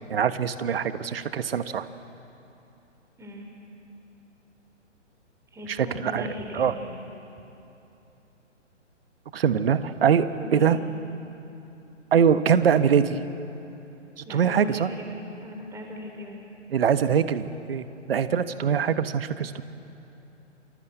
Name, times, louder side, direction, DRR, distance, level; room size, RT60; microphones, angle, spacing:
voice 1, 0.0-1.9 5.7-6.3 6.5-6.7 9.3-10.8 12.1-13.2 14.2-14.9 16.7-19.6, right 7 dB, 50° right, 12 dB, 1.3 m, -23 dB
voice 2, 3.2-3.5 5.5-6.8 10.4-10.8 14.2-16.4, equal, 5° right, 2 dB, 3.5 m, -38 dB
28.5 x 25.0 x 8.1 m, 3.0 s
figure-of-eight pair, 130°, 38 cm